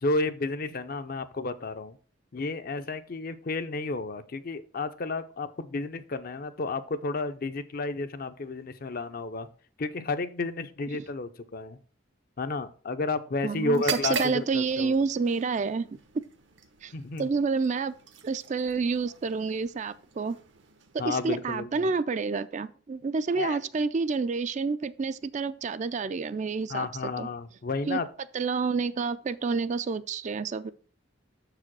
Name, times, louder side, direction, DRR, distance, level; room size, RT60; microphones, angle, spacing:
voice 1, 0.0-2.0 2.3-9.5 9.8-11.8 12.4-15.0 16.9-17.3 21.0-21.9 23.4-23.6 26.7-28.1, left 3 dB, 50° left, 0.6 m, -32 dB
voice 2, 13.4-15.9 16.8-16.9 17.2-17.9 18.2-20.4 20.9-26.9 27.2-27.3 27.9-28.0 28.3-30.7, right 4 dB, 40° right, 0.4 m, -29 dB
sound 1, 13.7-21.5, right 4 dB, 75° right, 0.9 m, -40 dB
6.5 x 4.9 x 6.0 m
head